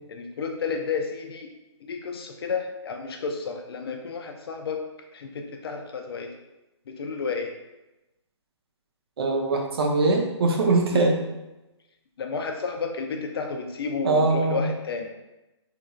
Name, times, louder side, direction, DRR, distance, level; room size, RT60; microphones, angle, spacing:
voice 1, 0.1-1.5 1.8-4.8 5.1-6.3 6.9-7.5 10.9-11.1 12.2-15.1, left 5 dB, 55° left, 3 dB, 0.4 m, -31 dB
voice 2, 9.2-11.2 14.0-14.6, right 3 dB, 55° right, 2 dB, 0.5 m, -22 dB
2.9 x 2.5 x 2.3 m, 0.99 s
hypercardioid pair, 155°, 16 cm